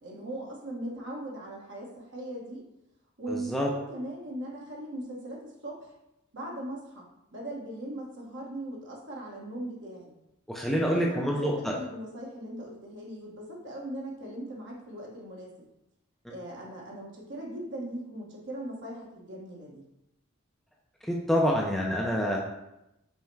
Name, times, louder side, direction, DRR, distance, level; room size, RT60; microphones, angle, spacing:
voice 1, 0.0-2.7 3.2-5.9 6.3-10.1 10.8-15.5 16.3-19.8, right 1 dB, 55° right, -2 dB, 1.0 m, -39 dB
voice 2, 3.3-3.7 10.5-11.7 16.3-16.4 21.1-22.4, equal, ahead, -3 dB, 0.4 m, -27 dB
5.5 x 2.1 x 4.5 m, 0.88 s
head